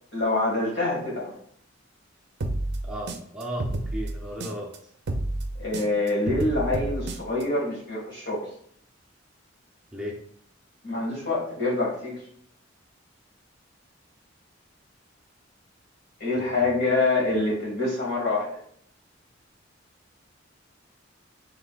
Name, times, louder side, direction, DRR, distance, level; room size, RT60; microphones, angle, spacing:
voice 1, 0.1-1.4 5.6-8.5 10.8-12.2 16.2-18.5, left 2 dB, 60° left, -4 dB, 1.8 m, -26 dB
sound 1, 2.4-4.8 5.1-7.4, right 1 dB, 55° right, 0.5 m, -30 dB
voice 2, 2.8-4.7 9.9-10.2 16.4-16.7, equal, 5° right, -4 dB, 0.7 m, -35 dB
5.7 x 3.3 x 2.4 m, 0.63 s
head